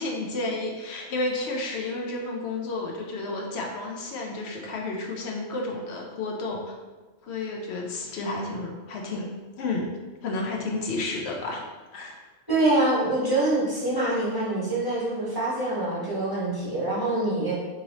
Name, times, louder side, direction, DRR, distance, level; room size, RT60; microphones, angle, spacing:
voice 1, 0.0-6.7 7.2-9.3 9.6-9.9 10.2-11.6 11.9-12.2, left 2 dB, 80° left, 0 dB, 0.9 m, -31 dB
voice 2, 12.5-17.6, right 2 dB, 20° right, -8 dB, 1.1 m, -25 dB
2.9 x 2.9 x 4.0 m, 1.3 s
omnidirectional pair, 1.1 m